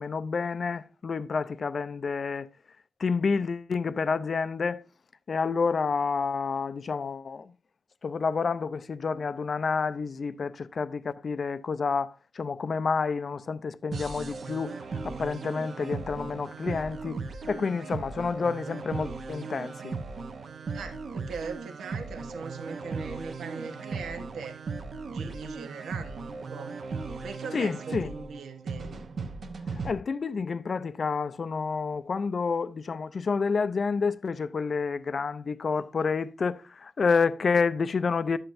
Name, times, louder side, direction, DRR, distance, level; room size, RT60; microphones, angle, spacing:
voice 1, 0.0-2.5 3.0-4.8 5.3-7.5 8.0-14.8 15.0-17.2 17.5-20.0 27.5-28.1 29.8-38.4, left 5 dB, 35° left, 0.4 m, -29 dB
sound 1, 13.9-29.9, right 4 dB, 45° right, 0.7 m, -37 dB
voice 2, 20.7-24.6 25.1-26.8 27.2-29.0, right 5 dB, 90° right, 1.1 m, -40 dB
11.5 x 7.8 x 2.6 m
wide cardioid pair, 180°, 0 cm